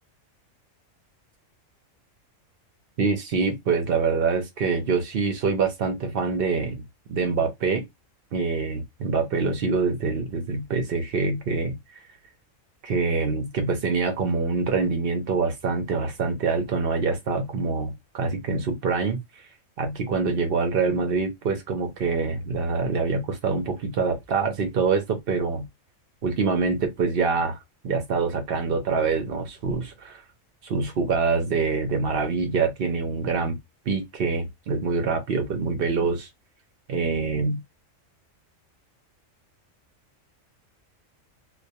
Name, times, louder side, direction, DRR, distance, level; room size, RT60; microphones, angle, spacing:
voice 1, 3.0-7.8 8.3-12.0 12.8-19.2 19.8-25.7 26.2-27.6 27.8-30.2 30.6-33.6 33.9-36.3 36.9-37.6, right 4 dB, 60° right, 0.7 m, -25 dB
2.2 x 2.2 x 2.7 m
omnidirectional pair, 1.4 m